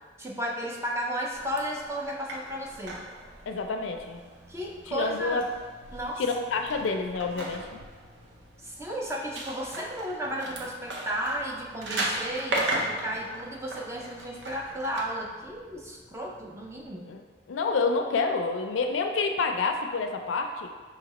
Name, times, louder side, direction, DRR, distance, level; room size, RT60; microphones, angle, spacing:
voice 1, 0.2-3.0 4.5-5.4 5.9-6.2 8.6-17.1, equal, 15° right, -2 dB, 0.4 m, -34 dB
sound 1, 1.3-15.0, right 1 dB, 70° right, 0.6 m, -37 dB
sound 2, 2.9-16.9, left 1 dB, 35° right, 0.8 m, -57 dB
voice 2, 3.5-4.2 4.9-5.4 6.2-7.7 17.1-17.2 17.5-20.7, left 4 dB, 85° left, 5 dB, 0.4 m, -28 dB
4.9 x 2.7 x 2.9 m, 1.4 s
head